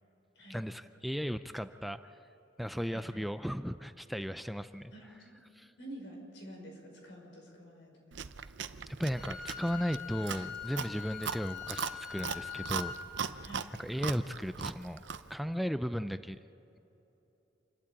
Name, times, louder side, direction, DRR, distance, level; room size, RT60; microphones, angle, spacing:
voice 1, 0.5-2.0 2.6-4.9 5.5-5.7 8.9-12.9 13.8-15.0 15.3-16.4, equal, ahead, 10 dB, 0.4 m, -35 dB
voice 2, 2.9-3.3 4.9-5.4 5.8-8.2 13.4-13.8, right 1 dB, 80° left, 0 dB, 5.5 m, -49 dB
Chewing mastication, 8.1-15.3, right 6 dB, 70° right, 0.7 m, -40 dB
Wind instrument woodwind instrument, 9.2-13.0, left 7 dB, 55° left, 3.2 m, -43 dB
28.0 x 12.5 x 8.7 m, 3.0 s
head